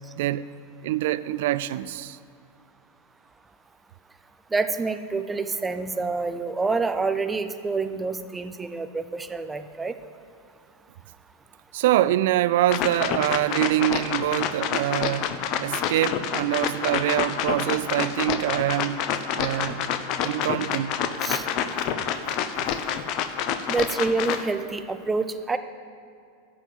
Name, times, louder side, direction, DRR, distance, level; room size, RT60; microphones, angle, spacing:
voice 1, 0.8-2.2 11.7-15.3 15.6-19.0 19.4-19.8 20.2-21.0, right 14 dB, 55° right, 0.3 m, -25 dB
voice 2, 4.5-9.9 21.2-21.4 23.7-25.6, right 4 dB, 10° right, 0.6 m, -27 dB
sound 1, 12.7-24.4, left 8 dB, 40° left, 0.7 m, -28 dB
13.0 x 7.0 x 7.2 m
figure-of-eight pair, 90°, 0 cm